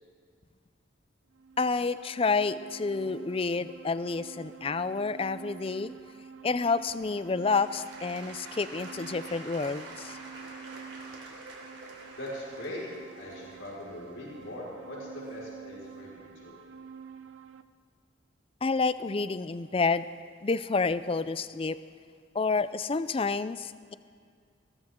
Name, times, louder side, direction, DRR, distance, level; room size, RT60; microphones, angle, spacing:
sound 1, 1.3-17.6, right 6 dB, 85° right, 0.7 m, -48 dB
voice 1, 1.6-5.9 6.4-10.2 18.6-20.1 20.4-21.8 22.3-24.0, left 4 dB, 30° left, 15 dB, 0.4 m, -29 dB
Applause / Crowd, 6.9-15.8 16.4-16.5, right 2 dB, 65° right, 3.5 m, -47 dB
voice 2, 12.2-12.8 13.2-16.7, left 1 dB, 75° left, -6 dB, 4.9 m, -41 dB
21.5 x 17.5 x 3.7 m, 2.2 s
head